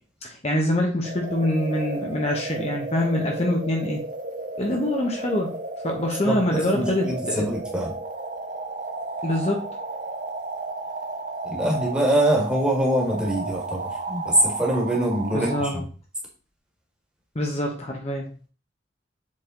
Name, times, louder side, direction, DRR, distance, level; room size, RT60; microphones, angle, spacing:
voice 1, 0.2-4.0 4.6-5.6 5.8-7.4 9.2-9.7 15.3-15.8 17.3-18.3, left 1 dB, 35° left, 0 dB, 1.1 m, -25 dB
sound 1, 1.0-15.7, right 3 dB, 45° right, 0.7 m, -33 dB
voice 2, 6.2-7.9 11.5-15.8, right 1 dB, 5° right, -3 dB, 1.9 m, -24 dB
7.4 x 4.2 x 3.8 m, 0.39 s
head